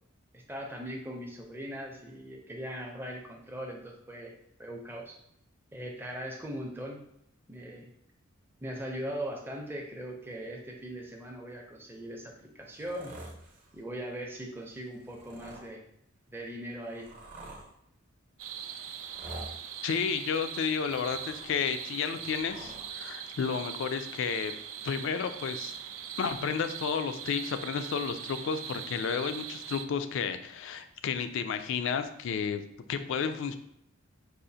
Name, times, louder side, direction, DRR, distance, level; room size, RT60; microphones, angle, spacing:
voice 1, 0.3-5.2 5.7-7.0 7.5-7.9 8.6-13.1 13.7-15.8 16.3-17.1, right 1 dB, 10° right, 1 dB, 0.5 m, -40 dB
sound 1, 12.7-13.8 14.9-15.7 16.5-17.7 19.0-19.6 20.6-21.7 22.0-22.9 24.0-24.1, right 1 dB, 40° right, 0.7 m, -47 dB
sound 2, 18.4-29.9, right 8 dB, 65° right, 0.3 m, -41 dB
voice 2, 19.8-24.5 24.8-25.7 26.2-32.6 32.9-33.6, left 6 dB, 60° left, 10 dB, 0.3 m, -32 dB
4.8 x 2.4 x 2.7 m, 0.74 s
head